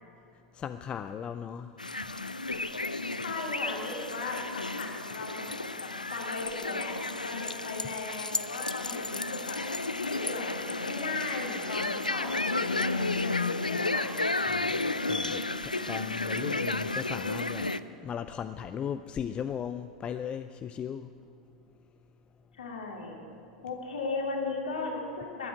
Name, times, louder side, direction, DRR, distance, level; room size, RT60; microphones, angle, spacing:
voice 1, 0.5-1.7 2.1-2.2 14.5-17.7 18.0-21.1, left 8 dB, 25° left, 10 dB, 0.4 m, -37 dB
sound 1, 1.8-17.8, left 2 dB, 90° left, 0.4 m, -32 dB
voice 2, 3.2-9.6 10.0-14.1 22.5-23.2 23.6-25.5, left 3 dB, 70° left, 0 dB, 2.5 m, -37 dB
12.5 x 9.7 x 9.3 m, 2.5 s
figure-of-eight pair, 90°, 4 cm